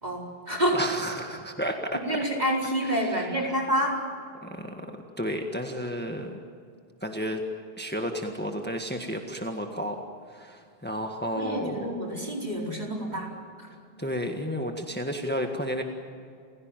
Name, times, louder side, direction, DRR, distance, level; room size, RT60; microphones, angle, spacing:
voice 1, 0.0-0.8 1.9-4.0 11.3-13.3 13.6-13.7, equal, 45° right, -1 dB, 4.8 m, -28 dB
voice 2, 0.7-2.0 2.9-3.4 4.4-6.3 7.0-7.4 7.8-10.0 10.3-11.9 14.0-15.8, equal, 10° left, 3 dB, 1.7 m, -32 dB
30.0 x 16.5 x 9.2 m, 2.2 s
omnidirectional pair, 1.0 m